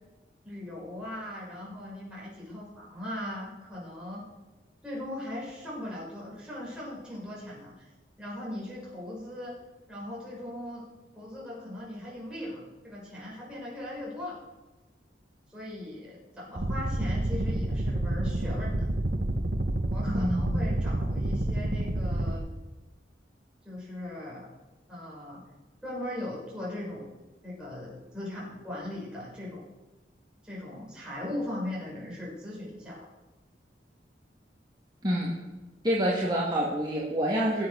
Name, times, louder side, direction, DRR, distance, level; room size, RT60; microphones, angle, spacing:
voice 1, 0.4-4.2 4.8-7.9 8.2-9.5 9.9-10.8 11.1-14.4 15.5-18.9 19.9-22.6 23.6-24.5 24.9-25.4 25.8-27.1 27.4-29.7 30.4-33.1, left 1 dB, 5° right, -6 dB, 6.0 m, -39 dB
sound 1, 16.6-22.3, right 1 dB, 55° right, 1.0 m, -29 dB
voice 2, 20.1-20.6 35.0-35.3 35.8-37.7, equal, 25° right, -5 dB, 2.3 m, -27 dB
20.0 x 8.0 x 6.6 m, 1.1 s
head